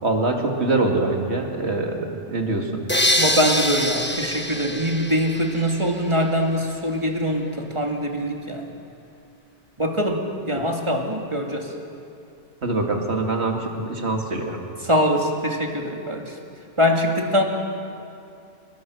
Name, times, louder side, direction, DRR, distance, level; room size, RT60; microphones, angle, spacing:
voice 1, 0.0-2.8 10.6-10.7 12.6-14.6, right 2 dB, 60° right, 2 dB, 2.6 m, -24 dB
sound 1, 2.9-5.9, left 1 dB, 10° left, 1.1 m, -24 dB
voice 2, 3.2-8.7 9.8-11.7 14.8-16.4 16.8-17.4, equal, 25° right, 1 dB, 2.4 m, -23 dB
29.5 x 20.5 x 6.4 m, 2.5 s
omnidirectional pair, 1.3 m